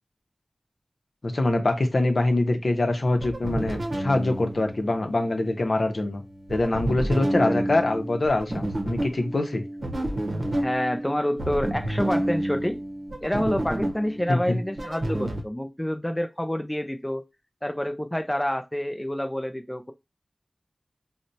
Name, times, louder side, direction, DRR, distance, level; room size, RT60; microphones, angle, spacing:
voice 1, 1.2-6.2 6.5-9.6 14.3-14.6, left 2 dB, 70° left, 0.6 m, -24 dB
sound 1, 2.8-15.4, right 1 dB, 75° right, 0.7 m, -30 dB
voice 2, 7.0-7.6 10.6-12.8 13.2-17.2 17.6-19.9, left 1 dB, 15° left, 0.3 m, -28 dB
4.1 x 2.1 x 2.6 m
wide cardioid pair, 70°, 0 cm